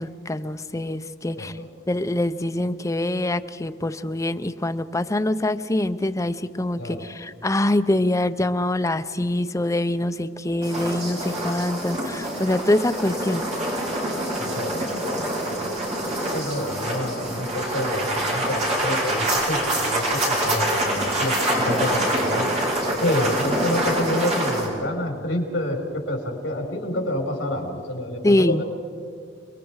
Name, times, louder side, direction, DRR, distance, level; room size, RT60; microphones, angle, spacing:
voice 1, 0.0-1.5 1.9-13.4 28.2-28.6, left 1 dB, 15° left, 9 dB, 0.6 m, -24 dB
voice 2, 1.3-1.7 6.8-7.1 14.4-15.7 16.3-22.5 23.0-28.6, left 1 dB, 70° left, 2 dB, 4.5 m, -28 dB
sound 1, 10.6-24.7, right 1 dB, 35° right, 5.2 m, -25 dB
30.0 x 21.5 x 4.8 m, 2.1 s
head